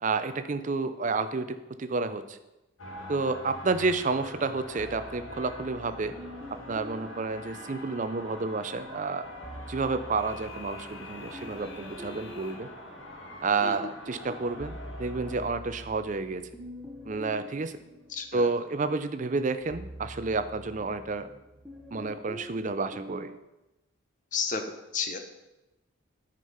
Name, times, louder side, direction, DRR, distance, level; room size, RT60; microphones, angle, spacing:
voice 1, 0.0-2.4 3.1-6.1 6.7-9.3 9.7-12.7 13.4-16.5 17.1-17.8 18.3-21.3 21.9-23.3, right 4 dB, 35° right, 11 dB, 0.5 m, -30 dB
sound 1, 2.8-15.4, left 1 dB, 70° left, 1.9 m, -44 dB
sound 2, 4.8-8.3 9.2-13.7 14.1-23.4, equal, 5° right, 1.1 m, -46 dB
voice 2, 18.1-18.5 24.3-24.6 24.9-25.2, left 5 dB, 40° left, 6 dB, 0.8 m, -31 dB
9.5 x 5.3 x 5.6 m, 0.99 s
head